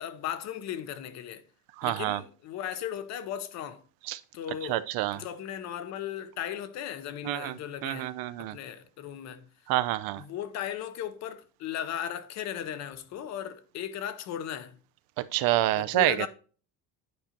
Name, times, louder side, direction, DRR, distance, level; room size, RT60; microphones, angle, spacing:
voice 1, 0.0-1.4 1.8-3.8 4.3-4.8 5.1-8.1 8.4-9.4 10.2-14.8 15.7-16.3, left 10 dB, 50° left, 0.8 m, -36 dB
voice 2, 1.8-2.2 4.1-4.2 4.7-5.2 7.2-7.5 7.8-8.6 9.7-10.2 15.2-16.2, right 15 dB, 80° right, 0.5 m, -27 dB
9.6 x 5.1 x 2.8 m
cardioid pair, 165°, 35 cm